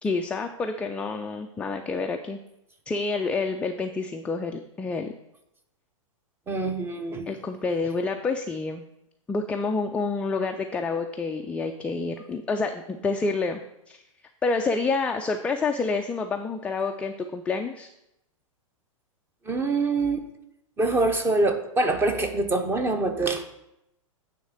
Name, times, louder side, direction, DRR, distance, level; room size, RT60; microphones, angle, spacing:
voice 1, 0.0-2.4 2.9-5.1 7.3-8.8 9.3-13.6 13.9-14.0 14.4-17.9, left 4 dB, 5° left, 4 dB, 0.3 m, -28 dB
voice 2, 6.5-7.3 19.5-20.2 20.8-23.4, right 2 dB, 15° right, 7 dB, 0.8 m, -24 dB
9.2 x 3.5 x 6.3 m, 0.84 s
figure-of-eight pair, 105°, 17 cm